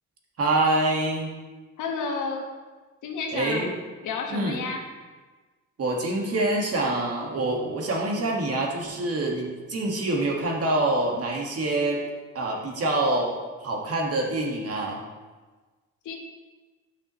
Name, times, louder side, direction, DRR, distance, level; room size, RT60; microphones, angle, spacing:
voice 1, 0.4-1.3 3.3-3.7 4.3-4.6 5.8-12.0 12.3-13.3 13.6-15.0, right 2 dB, 50° right, -1 dB, 1.8 m, -26 dB
voice 2, 1.8-2.5 3.0-3.7 4.0-4.8 16.0-16.2, left 4 dB, 80° left, 2 dB, 1.4 m, -31 dB
9.6 x 6.2 x 3.1 m, 1.3 s
cardioid pair, 90°, 30 cm